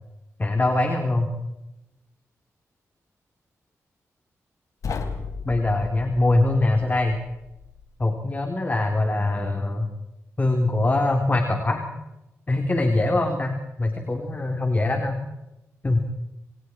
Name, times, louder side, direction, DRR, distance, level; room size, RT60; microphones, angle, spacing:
voice 1, 0.4-1.3 5.4-7.2 8.0-9.9 10.4-11.8 12.5-15.2 15.8-16.0, left 2 dB, 30° left, 3 dB, 4.3 m, -23 dB
sound 1, 4.8-7.9, left 5 dB, 75° left, 3.6 m, -35 dB
29.5 x 28.5 x 4.9 m, 0.94 s
cardioid pair, 85°, 6 cm